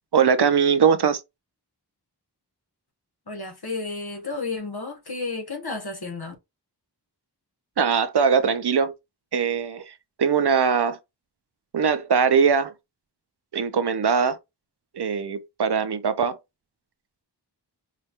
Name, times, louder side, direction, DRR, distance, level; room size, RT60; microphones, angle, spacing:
voice 1, 0.1-1.2 7.8-8.9 9.3-9.9 10.2-11.0 11.7-12.7 13.5-14.4 14.9-16.4, right 6 dB, 70° right, 0.6 m, -21 dB
voice 2, 3.3-6.3, left 3 dB, 65° left, 1.1 m, -32 dB
4.8 x 2.2 x 2.8 m
wide cardioid pair, 45°, 41 cm